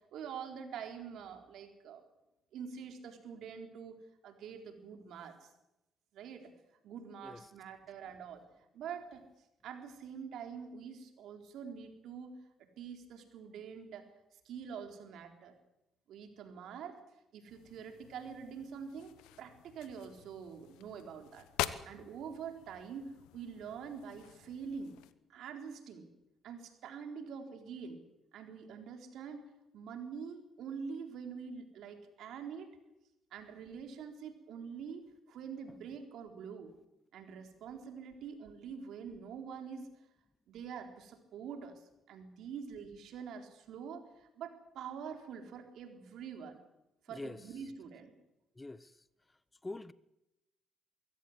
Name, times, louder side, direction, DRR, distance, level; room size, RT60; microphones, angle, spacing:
voice 1, 0.1-2.0 2.5-4.0 4.2-5.5 6.1-6.5 6.8-8.4 8.7-9.2 9.6-12.3 12.8-14.1 14.4-15.5 16.1-17.0 17.3-21.4 21.9-25.0 25.3-26.1 26.4-28.0 28.3-32.7 33.3-36.7 37.1-39.9 40.5-46.6 47.0-48.1, right 6 dB, 75° right, 4.0 m, -45 dB
sound 1, 17.5-25.1, left 14 dB, 90° left, 1.0 m, -45 dB
voice 2, 47.1-47.4 48.6-48.9 49.6-49.9, left 2 dB, 20° left, 0.9 m, -44 dB
23.5 x 16.5 x 8.1 m
supercardioid pair, 70°, 0 cm